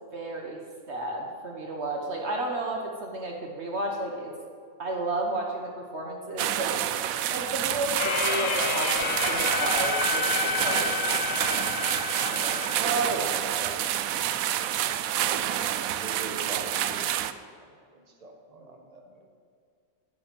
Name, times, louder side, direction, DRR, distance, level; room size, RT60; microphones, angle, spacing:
voice 1, 0.1-0.6 0.9-4.3 4.8-6.7 7.3-11.8 12.2-13.8, right 2 dB, 55° right, 0 dB, 1.4 m, -32 dB
sound 1, 6.4-17.3, right 11 dB, 80° right, 1.0 m, -28 dB
sound 2, 8.0-12.8, left 7 dB, 65° left, 0.5 m, -30 dB
voice 2, 11.6-12.6 14.7-19.2, right 2 dB, 30° right, 1 dB, 1.4 m, -45 dB
9.7 x 7.8 x 8.9 m, 2.2 s
omnidirectional pair, 1.4 m